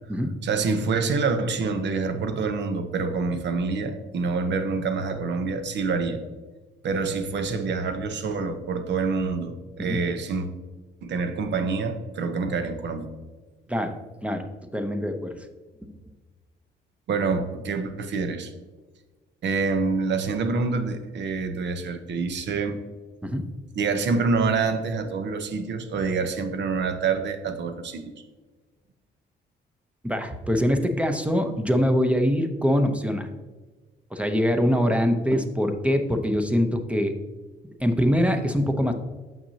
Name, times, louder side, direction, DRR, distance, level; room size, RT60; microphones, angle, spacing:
voice 1, 0.4-6.2 6.8-10.5 11.0-13.1 17.1-18.5 19.4-22.8 23.8-28.0, right 4 dB, 65° right, 8 dB, 0.8 m, -26 dB
voice 2, 13.7-14.5 14.7-15.5 23.2-23.4 30.0-33.3 34.1-37.1 37.8-38.9, equal, 5° right, 6 dB, 0.7 m, -23 dB
7.2 x 5.9 x 2.8 m, 1.3 s
cardioid pair, 90°, 20 cm